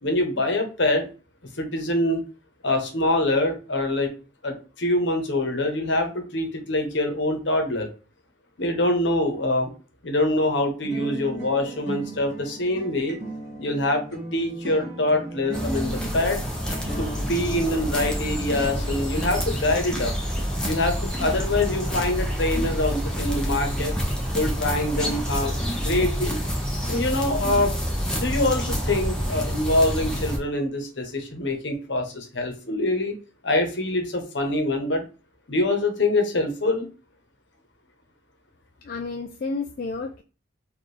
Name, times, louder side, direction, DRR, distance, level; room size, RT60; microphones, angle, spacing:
voice 1, 0.0-1.1 1.6-2.2 2.6-4.1 4.4-7.9 8.6-9.7 10.0-13.2 13.6-16.4 17.0-20.1 20.6-24.0 24.3-26.4 26.9-27.7 28.1-33.1 33.4-35.0 35.5-36.9, left 1 dB, 65° left, 5 dB, 1.0 m, -25 dB
sound 1, 10.8-19.2, right 1 dB, 40° right, 2.0 m, -37 dB
sound 2, 15.5-30.4, equal, 5° left, 0.7 m, -28 dB
voice 2, 38.8-40.2, left 3 dB, 45° left, 3 dB, 0.3 m, -31 dB
4.2 x 2.5 x 3.2 m, 0.35 s
head